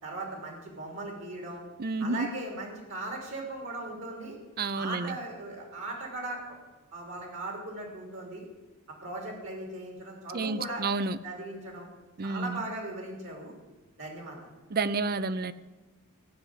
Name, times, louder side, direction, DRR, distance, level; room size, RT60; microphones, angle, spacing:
voice 1, 0.0-1.6 2.0-4.4 4.7-6.6 6.9-8.4 9.0-10.8 11.2-11.9 12.2-13.5 14.0-14.5, right 2 dB, 60° right, 2 dB, 3.3 m, -38 dB
voice 2, 1.8-2.3 4.6-5.1 10.3-11.2 12.2-12.6 14.7-15.5, right 3 dB, 45° right, 15 dB, 0.6 m, -30 dB
16.0 x 6.2 x 9.7 m, 1.2 s
head